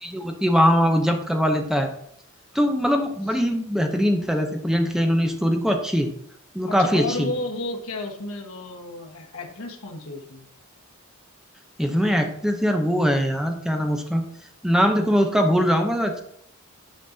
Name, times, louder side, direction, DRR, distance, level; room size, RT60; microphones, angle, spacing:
voice 1, 0.0-1.9 2.5-6.1 6.5-7.3 11.8-14.2 14.6-16.2, equal, ahead, 4 dB, 0.7 m, -21 dB
voice 2, 6.6-10.5, left 2 dB, 75° left, 1 dB, 1.4 m, -32 dB
10.0 x 5.1 x 2.7 m, 0.71 s
head